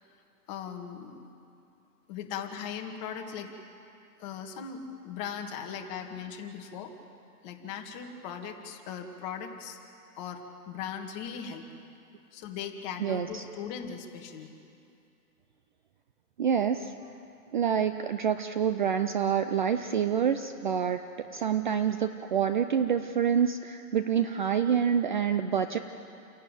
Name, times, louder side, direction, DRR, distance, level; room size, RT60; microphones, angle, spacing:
voice 1, 0.5-1.2 2.1-3.5 4.2-4.8 5.0-6.9 7.4-9.8 10.2-10.4 10.7-11.6 12.3-14.5, left 7 dB, 30° left, 2 dB, 2.0 m, -38 dB
voice 2, 13.0-13.4 16.4-16.9 17.5-21.0 21.3-25.8, right 8 dB, 30° right, 9 dB, 0.5 m, -27 dB
29.5 x 11.0 x 9.2 m, 2.5 s
hypercardioid pair, 165°, 47 cm